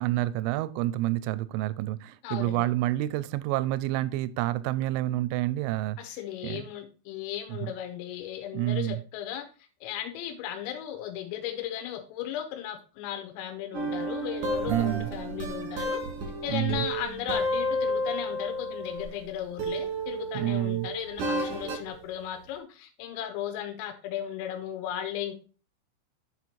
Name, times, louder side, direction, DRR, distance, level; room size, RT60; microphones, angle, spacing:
voice 1, 0.0-6.0 6.4-6.7 7.5-7.7 8.5-9.0 14.7-15.1 16.5-16.9 20.3-20.9, right 15 dB, 85° right, 2.9 m, -28 dB
voice 2, 2.2-2.7 6.0-9.5 9.8-16.0 16.4-25.3, left 11 dB, 85° left, 3.4 m, -36 dB
sound 1, 13.7-19.2 19.6-21.9, right 1 dB, 65° right, 1.9 m, -31 dB
8.1 x 4.4 x 4.2 m
omnidirectional pair, 6.0 m